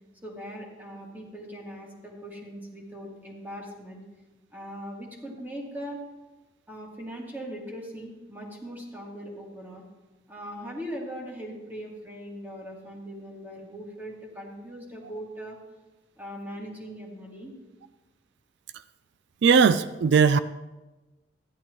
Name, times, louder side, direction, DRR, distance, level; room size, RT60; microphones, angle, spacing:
voice 1, 0.2-4.0 4.5-6.0 6.7-9.8 10.3-15.6 16.2-17.5, equal, 10° right, -2 dB, 2.1 m, -40 dB
voice 2, 19.4-20.4, right 6 dB, 85° right, 14 dB, 0.4 m, -19 dB
14.0 x 11.0 x 3.1 m, 1.1 s
head